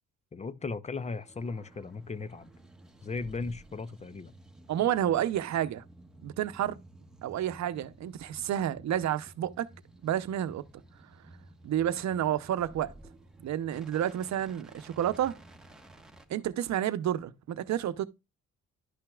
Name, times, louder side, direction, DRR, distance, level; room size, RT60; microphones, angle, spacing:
voice 1, 0.3-2.5 3.0-4.3, left 4 dB, 25° left, 0.6 m, -37 dB
sound 1, 0.9-16.3, right 1 dB, ahead, 1.4 m, -54 dB
voice 2, 4.7-5.8 6.2-6.8 7.2-9.7 10.0-10.6 11.6-12.9 13.4-15.4 16.3-18.0, right 11 dB, 65° right, 0.8 m, -30 dB
11.5 x 5.7 x 2.4 m
cardioid pair, 90°, 30 cm